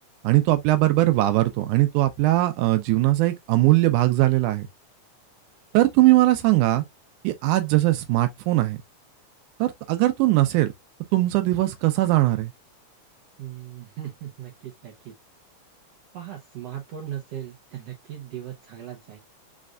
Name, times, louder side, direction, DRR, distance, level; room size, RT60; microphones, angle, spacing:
voice 1, 0.2-4.7 5.7-6.8 7.2-8.8 9.6-10.7 11.1-12.5, right 17 dB, 85° right, 2.1 m, -20 dB
voice 2, 13.4-15.1 16.1-19.2, right 11 dB, 70° right, 1.8 m, -38 dB
5.1 x 3.3 x 2.3 m
omnidirectional pair, 3.5 m